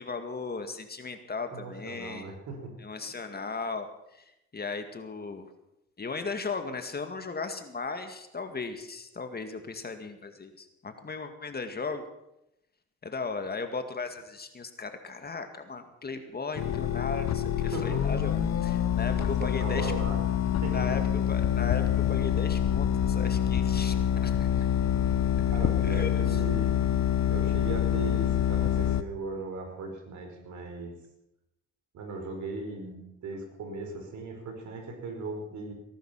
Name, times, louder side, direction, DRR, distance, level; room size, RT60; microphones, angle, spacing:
voice 1, 0.0-2.3 2.8-4.2 4.5-5.5 6.0-12.1 13.0-19.9 20.7-21.0 21.3-24.5 25.8-26.4, left 4 dB, 30° left, 7 dB, 2.1 m, -36 dB
voice 2, 1.5-2.7 17.6-18.0 19.0-20.2 20.6-20.9 24.5-24.6 25.5-26.7 27.3-30.9 31.9-35.7, right 3 dB, 70° right, 4 dB, 5.0 m, -38 dB
sound 1, 16.6-29.0, left 10 dB, 60° left, 1.1 m, -26 dB
19.5 x 11.5 x 5.8 m, 0.85 s
cardioid pair, 90°, 30 cm